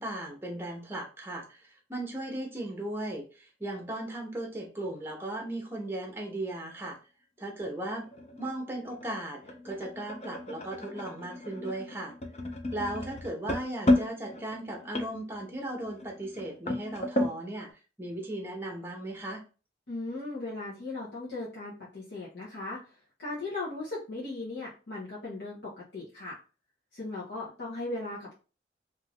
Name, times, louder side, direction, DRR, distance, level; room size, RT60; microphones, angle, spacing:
voice 1, 0.0-7.0 7.4-8.0 8.4-12.1 12.7-17.7 18.0-19.4, right 1 dB, 15° right, 1 dB, 0.7 m, -37 dB
sound 1, 7.6-17.4, left 1 dB, 35° left, 0.5 m, -33 dB
voice 2, 19.9-22.8 23.2-26.4 26.9-28.4, left 2 dB, 75° left, -7 dB, 0.9 m, -37 dB
2.7 x 2.5 x 3.3 m, 0.34 s
head